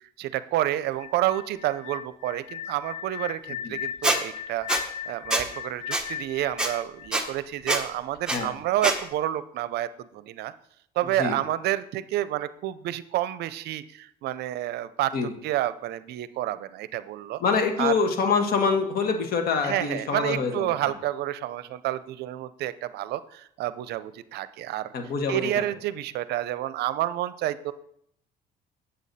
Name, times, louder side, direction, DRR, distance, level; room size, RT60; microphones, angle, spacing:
voice 1, 0.2-10.5 11.0-15.1 15.4-17.4 17.8-17.9 19.6-24.9 25.3-27.7, right 13 dB, 75° right, 15 dB, 0.5 m, -29 dB
sound 1, 0.9-7.8, left 9 dB, 40° left, 0.7 m, -37 dB
Squeak, 4.0-4.2 4.7-4.8 5.3-5.4 5.9-6.0 6.6-6.7 7.1-7.2 7.7-7.8 8.3-8.4 8.8-9.0, right 1 dB, 5° right, 1.1 m, -24 dB
voice 2, 17.4-20.7 24.9-25.6, left 5 dB, 65° left, 5 dB, 1.5 m, -25 dB
8.3 x 7.8 x 4.1 m, 0.71 s
cardioid pair, 110°, 17 cm